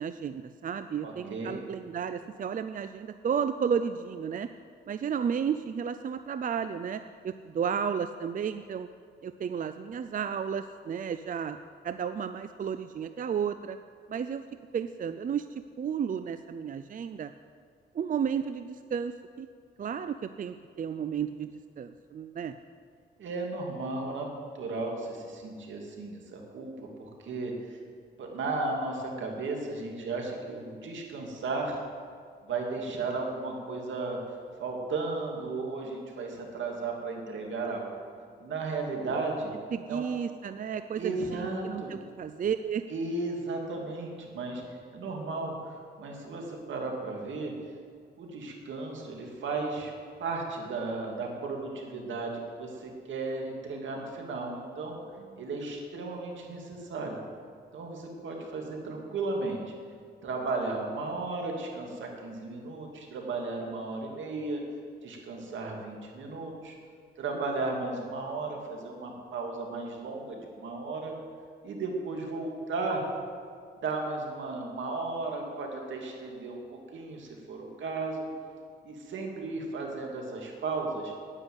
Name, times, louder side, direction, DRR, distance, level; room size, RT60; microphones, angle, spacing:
voice 1, 0.0-4.5 4.9-8.9 9.2-11.6 11.8-13.8 14.1-14.4 14.7-17.3 17.9-19.5 19.8-21.5 21.8-22.5 39.7-42.8 55.3-55.4, right 7 dB, 45° right, 10 dB, 0.5 m, -33 dB
voice 2, 1.0-1.6 23.2-24.3 24.5-26.7 27.0-27.8 28.2-31.8 32.4-34.2 34.6-38.0 38.4-39.5 39.9-40.1 40.9-42.0 42.9-47.5 48.2-49.9 50.2-55.0 55.4-57.2 57.7-59.6 60.2-64.6 65.0-66.8 67.2-71.1 71.6-73.0 73.8-78.3 78.8-81.1, right 3 dB, 80° right, 1 dB, 2.5 m, -35 dB
9.9 x 9.8 x 8.0 m, 2.1 s
cardioid pair, 95°, 19 cm